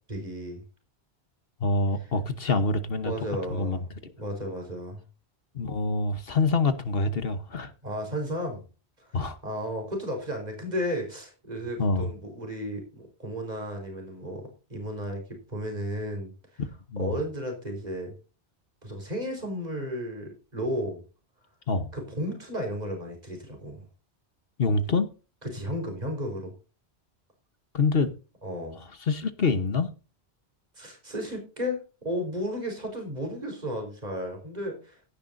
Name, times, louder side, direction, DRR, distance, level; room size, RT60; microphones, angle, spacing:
voice 1, 0.1-0.6 2.0-2.1 3.0-3.9 4.2-5.0 7.8-8.6 9.0-16.6 17.0-18.1 18.8-21.0 21.9-23.8 25.5-26.5 28.4-28.8 30.7-35.0, equal, 40° right, 4.7 m, -34 dB
voice 2, 1.6-3.1 3.5-4.1 5.5-7.7 9.1-9.4 11.8-12.1 16.9-17.2 21.7-21.9 24.6-25.1 27.7-28.1 29.0-29.9, left 3 dB, 60° left, 1.3 m, -26 dB
17.0 x 10.0 x 2.6 m
omnidirectional pair, 1.1 m